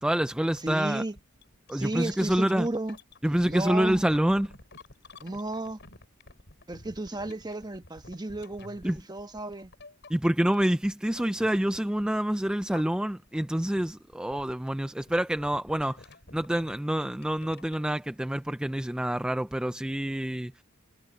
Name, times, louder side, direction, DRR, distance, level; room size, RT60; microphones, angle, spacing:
voice 1, 0.0-1.0 1.7-2.7 3.2-4.6 8.8-9.0 10.1-20.6, right 1 dB, 5° right, 0.3 m, -27 dB
sound 1, 0.6-0.8 1.1-12.2 12.5-13.3 13.5-17.9, left 3 dB, 60° left, 4.4 m, -51 dB
voice 2, 0.6-1.2 1.7-3.0 3.5-4.0 5.2-5.8 6.7-9.7, right 2 dB, 20° right, 1.2 m, -33 dB
head